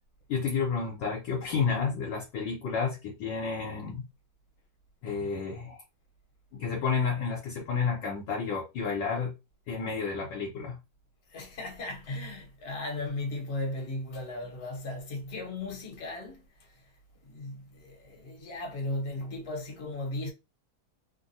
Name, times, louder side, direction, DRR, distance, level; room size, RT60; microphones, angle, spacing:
voice 1, 0.3-4.0 5.0-5.8 6.5-9.3 9.7-10.8, left 5 dB, 70° left, 1.4 m, -31 dB
voice 2, 11.3-16.4 17.2-20.3, left 2 dB, 40° left, 1.1 m, -36 dB
3.6 x 2.2 x 2.6 m
omnidirectional pair, 2.3 m